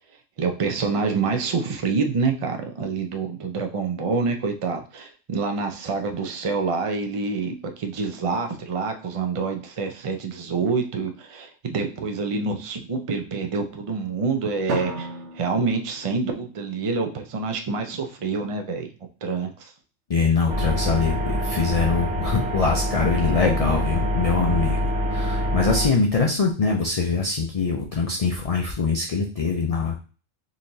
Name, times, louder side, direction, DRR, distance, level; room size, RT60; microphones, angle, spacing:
voice 1, 0.4-15.1 15.3-18.9 19.2-19.7, right 4 dB, 50° right, 5 dB, 0.4 m, -27 dB
Drum, 14.7-17.0, right 3 dB, 70° right, 1.0 m, -33 dB
voice 2, 20.1-24.8 25.1-30.0, left 4 dB, 60° left, 1 dB, 0.4 m, -23 dB
sound 1, 20.5-25.9, equal, 5° right, 0.6 m, -25 dB
4.0 x 3.0 x 2.6 m, 0.36 s
omnidirectional pair, 1.3 m